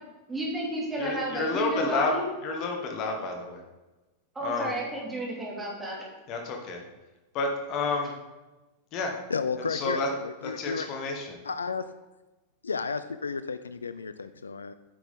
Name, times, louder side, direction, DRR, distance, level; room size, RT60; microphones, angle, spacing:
voice 1, 0.3-2.2 4.3-6.0, right 1 dB, 10° right, -4 dB, 2.8 m, -32 dB
voice 2, 1.0-2.1 2.4-3.6 4.4-4.7 6.3-6.8 7.3-8.1 8.9-9.1 9.7-10.1 10.4-11.4, left 3 dB, 40° left, 2 dB, 1.3 m, -30 dB
voice 3, 9.3-10.9 11.4-11.9 12.6-14.7, left 5 dB, 75° left, 12 dB, 0.3 m, -32 dB
9.9 x 6.0 x 3.7 m, 1.1 s
figure-of-eight pair, 90°, 0 cm